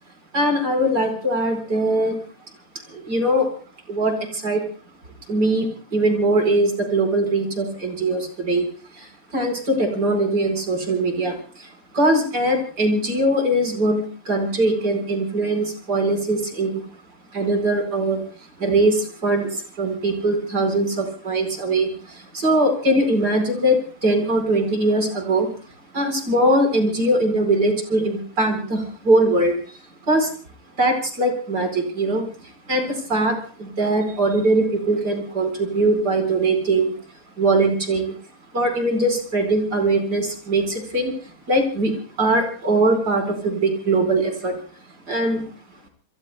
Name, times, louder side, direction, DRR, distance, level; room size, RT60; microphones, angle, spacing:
voice 1, 0.3-2.2 2.9-3.5 3.9-4.6 5.3-8.7 8.9-16.8 17.3-18.2 18.6-25.5 25.9-29.8 30.1-30.3 30.8-37.0 37.4-38.2 38.5-44.6 45.1-45.4, right 1 dB, 45° right, 5 dB, 5.3 m, -21 dB
29.0 x 22.5 x 2.2 m, 0.42 s
omnidirectional pair, 2.4 m